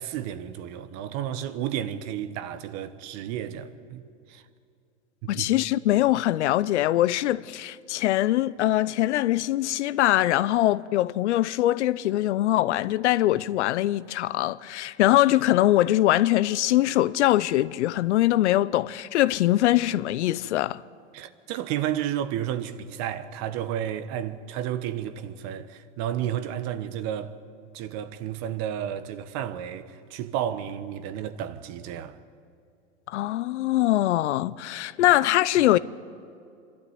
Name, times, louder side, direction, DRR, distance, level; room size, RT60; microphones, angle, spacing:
voice 1, 0.0-4.4 5.2-5.5 21.1-27.4 27.7-32.2, right 10 dB, 45° right, 1.3 m, -32 dB
voice 2, 5.3-20.8 33.1-35.8, left 15 dB, 70° left, 0.7 m, -22 dB
25.5 x 12.5 x 9.4 m
hypercardioid pair, 105°, 36 cm